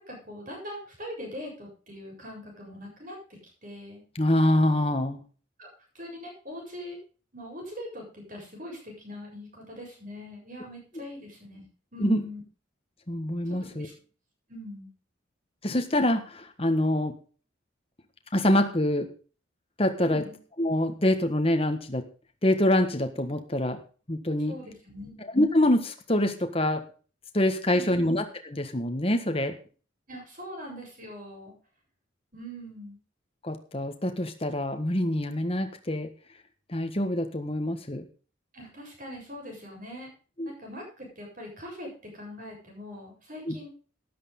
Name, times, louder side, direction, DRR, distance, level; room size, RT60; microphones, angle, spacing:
voice 1, 0.1-4.0 5.6-5.7 5.9-7.0 7.3-11.6 11.9-12.4 13.6-13.9 14.5-14.9 20.0-20.4 24.5-25.1 27.6-28.1 30.1-31.5 32.3-33.0 38.5-40.1 40.4-43.7, left 1 dB, 40° right, 0 dB, 7.6 m, -42 dB
voice 2, 4.1-5.2 12.0-12.2 13.1-13.9 15.6-17.1 18.3-19.1 19.8-20.2 20.6-22.1 22.4-23.8 24.1-24.6 25.2-26.8 27.3-29.6 33.4-36.1 36.7-38.1 40.4-40.5 43.5-43.6, left 1 dB, 30° left, 6 dB, 1.6 m, -25 dB
13.0 x 11.0 x 3.8 m, 0.38 s
head